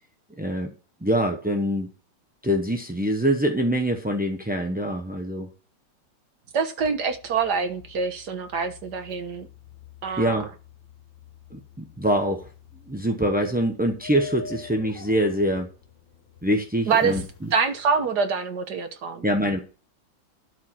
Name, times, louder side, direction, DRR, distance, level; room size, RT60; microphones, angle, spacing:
voice 1, 0.4-0.7 1.0-1.9 2.4-5.5 10.2-10.5 11.5-12.5 12.9-15.7 16.4-17.2 19.2-19.6, equal, 10° right, 0.4 m, -24 dB
voice 2, 6.5-9.5 10.0-10.4 16.9-17.2 17.5-19.3, right 5 dB, 60° right, 1.7 m, -25 dB
sound 1, 6.8-18.1, left 7 dB, 75° left, 2.2 m, -46 dB
12.0 x 4.9 x 5.8 m
omnidirectional pair, 2.0 m